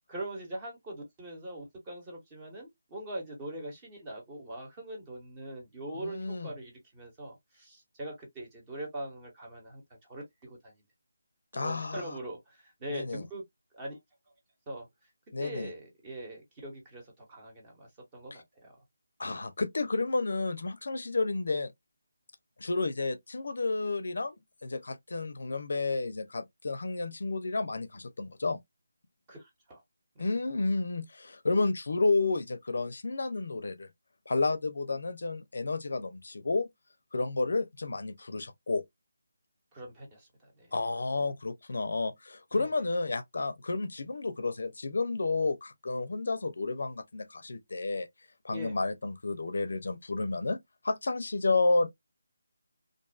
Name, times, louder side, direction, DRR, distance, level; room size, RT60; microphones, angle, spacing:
voice 1, 0.1-10.7 11.5-13.4 13.7-14.0 14.7-14.9 15.4-18.8 29.3-29.8 30.1-30.3 39.7-40.7 42.5-42.8 48.5-48.8, right 1 dB, 20° right, 1.1 m, -42 dB
voice 2, 6.0-6.5 11.5-12.0 12.9-13.2 15.3-15.7 19.2-21.7 22.6-24.4 24.6-28.6 30.2-33.9 34.3-36.7 37.1-38.8 40.7-48.1 48.4-50.6 50.8-51.9, left 3 dB, 65° left, 0.5 m, -31 dB
2.5 x 2.3 x 2.3 m
figure-of-eight pair, 165°, 0 cm